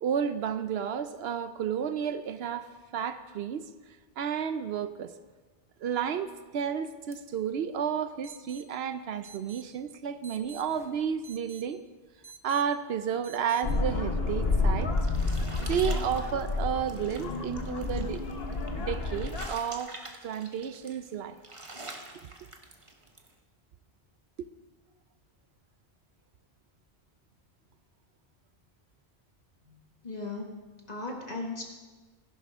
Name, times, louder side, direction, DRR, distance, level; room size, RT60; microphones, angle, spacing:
voice 1, 0.0-3.7 4.2-5.1 5.8-11.8 12.4-14.9 15.6-18.2 18.8-19.9 20.2-21.4 22.1-22.3 24.4-24.5, right 8 dB, 75° right, 11 dB, 0.8 m, -32 dB
sound 1, 7.1-7.2 7.4-7.5 8.2-8.6 9.2-9.6 10.2-11.6 12.2-12.6 13.2-13.6, right 5 dB, 5° right, 1.0 m, -49 dB
sound 2, 13.6-19.5, left 3 dB, 65° left, 1.4 m, -30 dB
sound 3, 14.4-23.3, right 2 dB, 30° right, 1.1 m, -47 dB
voice 2, 29.6-30.6 30.9-31.6, left 2 dB, 40° left, 1 dB, 1.7 m, -37 dB
15.5 x 11.0 x 3.6 m, 1.3 s
omnidirectional pair, 1.1 m